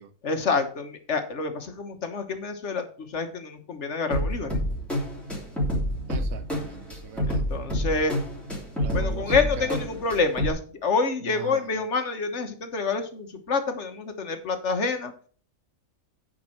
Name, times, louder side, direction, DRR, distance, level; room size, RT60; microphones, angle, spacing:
voice 1, 0.2-4.6 7.3-8.2 8.9-15.1, left 4 dB, 55° left, 1.5 m, -27 dB
sound 1, 4.1-10.5, equal, ahead, 3.1 m, -28 dB
voice 2, 6.1-7.4 8.8-9.8 11.2-11.8, right 8 dB, 90° right, 1.3 m, -40 dB
9.3 x 5.3 x 5.8 m
omnidirectional pair, 1.4 m